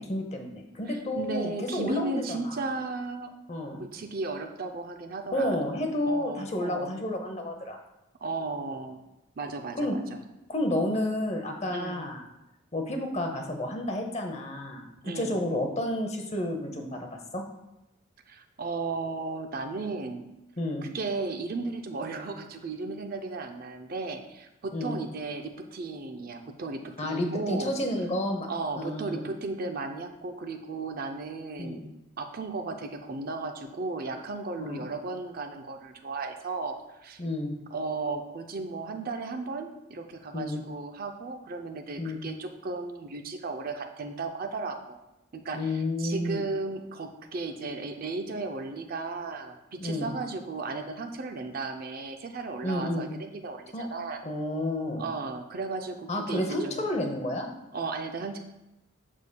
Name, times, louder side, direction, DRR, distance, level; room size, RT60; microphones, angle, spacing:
voice 1, 0.0-2.7 3.5-3.8 5.3-7.8 9.7-10.0 10.5-12.2 12.7-17.5 20.6-20.9 24.7-25.0 27.0-28.5 28.8-29.3 31.6-31.9 34.6-34.9 37.2-37.6 40.3-40.6 42.0-42.3 45.5-46.4 49.8-50.1 52.6-53.1 53.7-53.9 54.2-55.1 56.1-57.5, left 1 dB, 30° left, 4 dB, 0.7 m, -31 dB
voice 2, 0.9-3.3 3.8-5.5 6.1-6.9 8.2-9.0 9.4-10.2 11.7-12.0 15.0-15.4 18.3-20.3 20.8-27.7 28.5-31.9 32.2-37.2 37.7-45.0 45.3-54.2 55.0-56.8 57.7-58.4, right 3 dB, 45° right, 5 dB, 0.5 m, -35 dB
7.3 x 6.5 x 2.2 m, 0.94 s
head